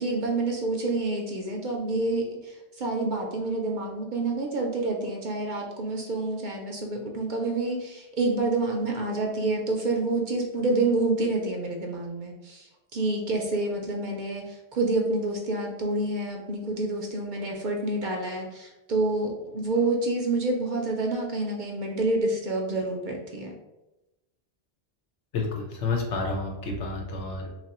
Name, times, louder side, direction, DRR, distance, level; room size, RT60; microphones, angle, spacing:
voice 1, 0.0-23.5, right 2 dB, 55° right, 1 dB, 0.6 m, -28 dB
voice 2, 25.3-27.5, left 3 dB, 85° left, 1 dB, 1.1 m, -30 dB
3.0 x 2.4 x 4.1 m, 0.99 s
omnidirectional pair, 1.1 m